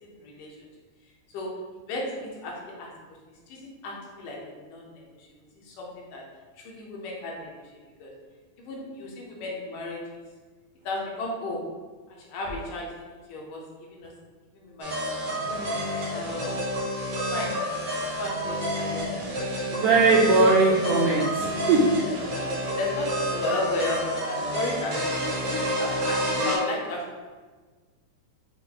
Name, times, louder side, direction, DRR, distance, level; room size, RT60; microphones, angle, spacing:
voice 1, 0.0-0.6 1.3-1.5 1.9-2.9 3.5-5.3 5.6-6.2 6.6-7.5 8.0-8.1 8.6-10.2 10.8-11.6 12.1-12.9 13.3-13.6 13.9-14.1 14.5-15.4 16.1-16.7 17.2-17.5 17.8-20.3 22.6-25.3 25.8-27.0, left 2 dB, 75° left, -2 dB, 2.0 m, -34 dB
sound 1, 14.8-26.6, equal, 65° right, 1.0 m, -29 dB
voice 2, 19.7-21.8, right 3 dB, 80° right, -4 dB, 1.5 m, -20 dB
6.0 x 2.1 x 3.8 m, 1.4 s
omnidirectional pair, 3.5 m